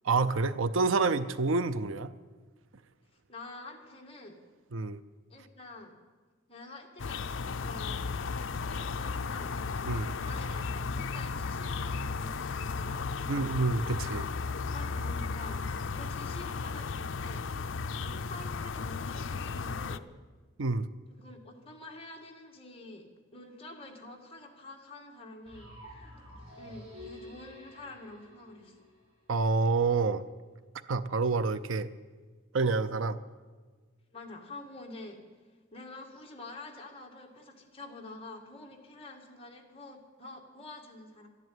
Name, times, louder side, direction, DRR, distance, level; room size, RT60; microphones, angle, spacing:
voice 1, 0.0-2.1 4.7-5.0 9.8-10.1 13.3-14.2 20.6-20.8 29.3-30.3 30.9-31.9 32.5-33.2, right 3 dB, 75° right, 14 dB, 0.6 m, -28 dB
voice 2, 3.3-4.4 5.3-5.9 6.5-8.0 8.7-9.5 10.2-13.6 14.7-15.6 15.9-17.5 18.0-20.0 21.1-26.1 26.6-28.8 34.1-35.2 35.7-41.3, left 2 dB, 30° left, 1 dB, 1.9 m, -47 dB
sound 1, 7.0-20.0, left 4 dB, 65° left, 0.5 m, -35 dB
sound 2, 25.4-29.4, left 1 dB, 30° right, 6.4 m, -49 dB
13.0 x 11.0 x 9.3 m, 1.4 s
head